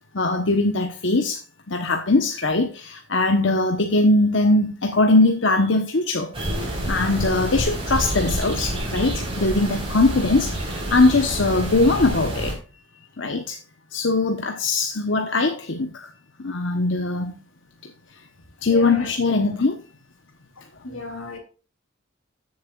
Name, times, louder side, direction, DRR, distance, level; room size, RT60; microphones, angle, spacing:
voice 1, 0.1-1.4 1.7-6.3 6.6-12.6 13.2-13.6 13.9-16.1 16.4-17.3 18.6-19.8, left 2 dB, 65° left, 1.0 m, -21 dB
sound 1, 6.3-12.5, right 1 dB, 25° right, 4.1 m, -28 dB
voice 2, 18.6-19.2 20.8-21.4, left 3 dB, 85° left, 3.3 m, -33 dB
14.5 x 7.3 x 2.4 m
head